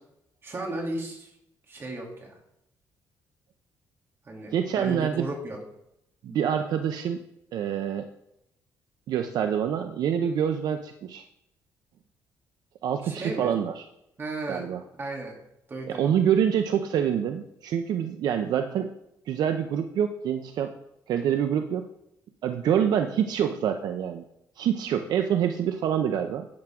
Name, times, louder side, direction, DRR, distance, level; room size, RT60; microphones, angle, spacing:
voice 1, 0.4-1.3 1.7-2.4 4.2-5.6 6.3-6.4 13.0-13.5 14.2-14.7 15.0-15.3 15.7-16.2, right 2 dB, 35° right, 0 dB, 2.9 m, -35 dB
voice 2, 4.5-5.3 6.2-7.2 7.5-8.1 9.1-11.2 12.8-13.8 14.5-14.8 15.9-18.9 19.3-20.8 21.1-21.9 22.4-24.2 24.6-26.5, right 9 dB, 70° right, 7 dB, 0.7 m, -26 dB
10.5 x 9.1 x 3.7 m, 0.81 s
cardioid pair, 120°, 7 cm